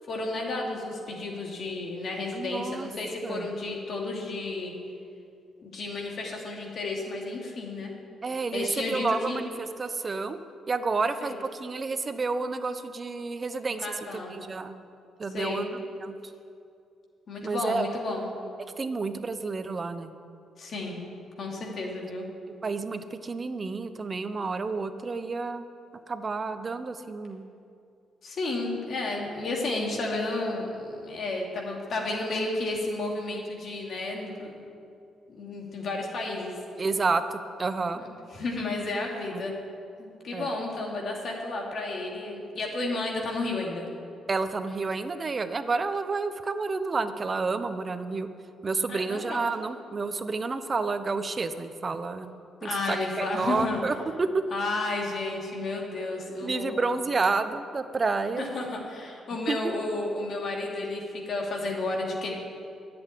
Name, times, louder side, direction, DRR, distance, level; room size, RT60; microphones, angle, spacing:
voice 1, 0.1-4.7 5.6-7.9 8.5-9.4 11.2-11.4 13.8-14.4 15.3-15.8 17.3-18.3 20.6-21.0 21.4-22.3 28.2-34.7 35.3-36.6 37.9-38.1 38.3-39.5 40.0-43.8 48.9-49.5 52.6-53.8 54.5-57.0 58.4-62.3, left 2 dB, 55° left, -1 dB, 2.7 m, -32 dB
voice 2, 2.3-2.9 3.2-3.5 8.2-10.4 10.7-13.9 14.1-14.8 15.2-15.7 16.0-16.1 17.4-17.9 18.8-20.1 22.6-25.6 26.1-27.4 36.8-38.0 39.3-39.5 40.3-40.5 44.3-48.3 48.6-52.3 52.6-54.3 56.4-58.5 59.5-59.7, right 4 dB, 35° right, 10 dB, 0.8 m, -30 dB
10.5 x 7.9 x 10.0 m, 2.5 s
cardioid pair, 90°, 0 cm